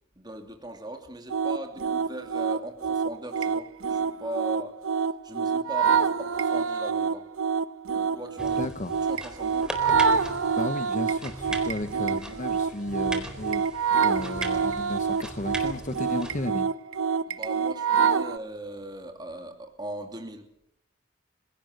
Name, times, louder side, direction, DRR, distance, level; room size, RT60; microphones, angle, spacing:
voice 1, 0.2-4.7 5.2-7.3 7.9-8.6 9.1-9.8 17.3-20.5, right 1 dB, 20° right, 4 dB, 2.8 m, -39 dB
sound 1, 1.3-18.4, right 6 dB, 85° right, 1.1 m, -26 dB
sound 2, 8.4-16.5, right 1 dB, 5° right, 4.1 m, -39 dB
voice 2, 8.6-8.9 10.6-16.7, left 1 dB, 40° left, 9 dB, 1.1 m, -34 dB
29.5 x 17.0 x 8.0 m, 0.76 s
head